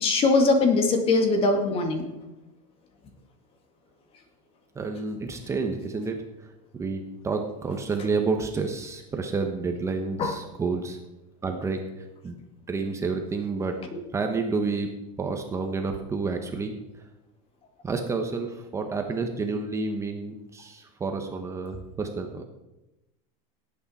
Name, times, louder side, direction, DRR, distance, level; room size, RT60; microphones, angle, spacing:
voice 1, 0.0-2.0 10.2-10.3, left 3 dB, 35° left, 5 dB, 2.0 m, -21 dB
voice 2, 4.7-6.2 6.7-11.0 11.4-12.4 12.7-13.8 14.1-14.9 15.2-16.7 17.8-22.4, right 4 dB, 15° right, 4 dB, 1.1 m, -29 dB
17.5 x 8.7 x 4.3 m, 0.96 s
supercardioid pair, 145°, 17 cm